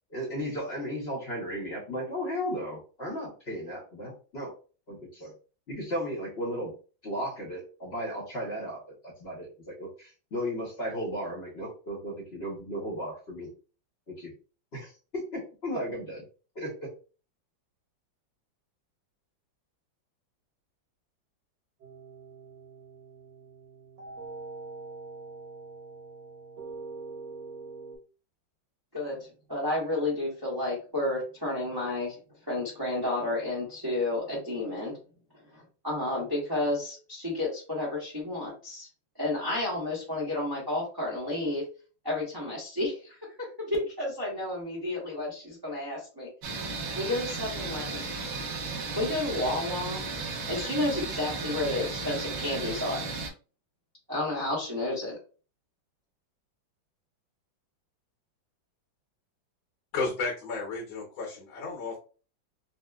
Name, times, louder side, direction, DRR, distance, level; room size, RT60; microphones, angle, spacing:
voice 1, 0.1-4.5 4.9-5.3 5.7-6.7 7.0-13.5 14.1-14.3 14.7-16.2 16.5-16.7, equal, 50° left, -3 dB, 0.7 m, -35 dB
sound 1, 21.8-28.0, right 3 dB, 80° right, 1.9 m, -44 dB
voice 2, 28.9-32.2 32.5-34.9 35.5-38.9 39.2-41.6 42.0-46.3 46.9-48.1 49.0-50.0 50.5-53.0 54.1-55.1, left 2 dB, 25° right, -5 dB, 0.5 m, -31 dB
sound 2, 46.4-53.3, right 4 dB, 65° right, 1.4 m, -35 dB
voice 3, 59.9-62.0, left 4 dB, 80° left, -3 dB, 1.6 m, -33 dB
4.1 x 2.1 x 2.3 m, 0.36 s
omnidirectional pair, 2.1 m